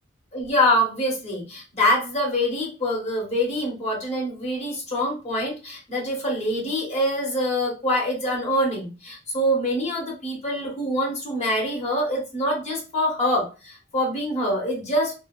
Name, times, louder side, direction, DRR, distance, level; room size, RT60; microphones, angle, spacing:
voice 1, 0.3-15.1, left 1 dB, 35° left, -2 dB, 0.9 m, -25 dB
3.2 x 2.2 x 2.3 m, 0.33 s
head